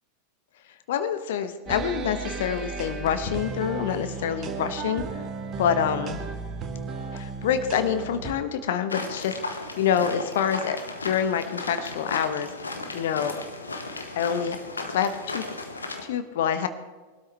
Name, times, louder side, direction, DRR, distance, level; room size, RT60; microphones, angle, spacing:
voice 1, 0.9-5.2 5.6-6.2 7.1-9.3 9.8-12.5 12.9-13.4 14.1-14.6 14.9-15.5 16.0-16.7, left 8 dB, 55° left, 10 dB, 1.1 m, -26 dB
sound 1, 1.7-8.3, right 4 dB, 25° right, 1.9 m, -34 dB
sound 2, 8.9-16.0, left 3 dB, 75° left, 1.6 m, -35 dB
22.5 x 12.5 x 3.4 m, 1.3 s
figure-of-eight pair, 90°, 0 cm